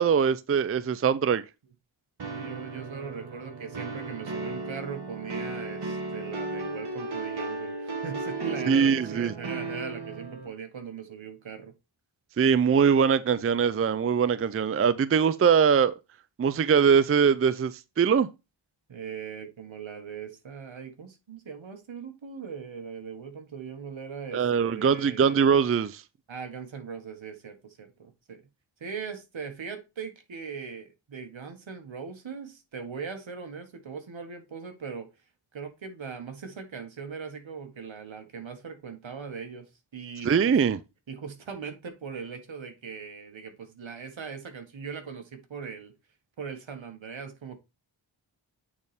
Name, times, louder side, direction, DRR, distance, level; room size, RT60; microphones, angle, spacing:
voice 1, 0.0-1.4 8.7-9.3 12.4-15.9 16.4-17.7 18.0-18.3 24.3-26.0 40.3-40.8, right 6 dB, 30° right, 0.4 m, -22 dB
sound 1, 2.2-10.5, right 3 dB, 55° right, 1.3 m, -35 dB
voice 2, 2.2-11.7 18.9-25.4 26.3-28.4 28.8-35.1 35.5-40.6 41.1-45.9 46.4-47.6, right 6 dB, 75° right, 1.6 m, -40 dB
8.7 x 4.1 x 3.5 m
wide cardioid pair, 100°, 47 cm